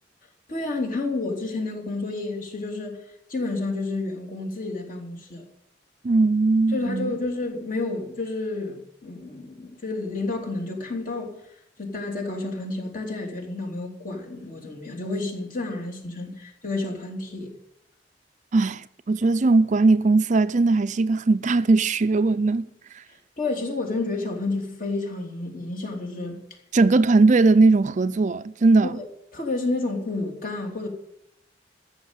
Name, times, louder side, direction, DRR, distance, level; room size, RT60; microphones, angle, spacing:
voice 1, 0.5-3.0 3.3-5.4 6.7-11.4 11.8-17.5 23.4-26.4 28.8-29.1 29.3-30.9, left 2 dB, 50° left, 3.1 m, -30 dB
voice 2, 6.0-7.2 18.5-22.7 22.9-23.0 26.7-29.0, right 3 dB, 45° right, 0.5 m, -19 dB
14.0 x 6.7 x 9.1 m
head